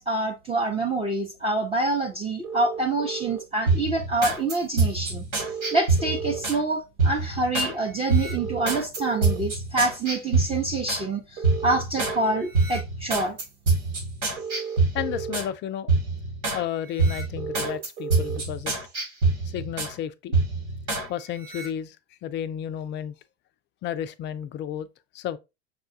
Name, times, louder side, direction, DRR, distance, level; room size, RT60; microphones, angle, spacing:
voice 1, 0.0-5.3 5.7-13.4, right 2 dB, 15° right, 0.6 m, -26 dB
sound 1, 2.4-3.4 5.4-6.4 8.4-9.4 11.4-12.4 14.4-15.4 17.4-18.4, right 7 dB, 65° right, 1.3 m, -34 dB
sound 2, 3.7-6.6 7.0-7.7 8.1-11.1 11.4-12.2 12.5-15.5 15.9-16.6 17.0-19.9 20.3-21.1 21.4-21.7, right 3 dB, 90° right, 1.9 m, -25 dB
voice 2, 14.9-15.9 16.5-18.7 19.5-20.4 21.1-22.0 22.2-23.1 23.8-24.9 25.1-25.4, left 10 dB, 35° left, 0.4 m, -32 dB
5.8 x 2.2 x 2.6 m
hypercardioid pair, 90°, 35 cm